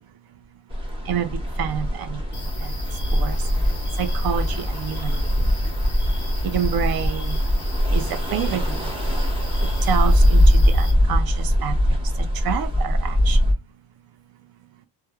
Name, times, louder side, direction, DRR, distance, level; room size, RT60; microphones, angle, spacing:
sound 1, 0.7-13.5, equal, 10° right, 0.7 m, -21 dB
voice 1, 1.1-2.2 2.6-2.7 3.1-3.4 4.0-5.4 6.4-7.4 7.9-8.9 9.8-13.4, right 9 dB, 55° right, 0.5 m, -28 dB
sound 2, 2.3-10.9, left 2 dB, 25° left, 0.9 m, -36 dB
3.0 x 2.1 x 2.2 m
cardioid pair, 120°, 45 cm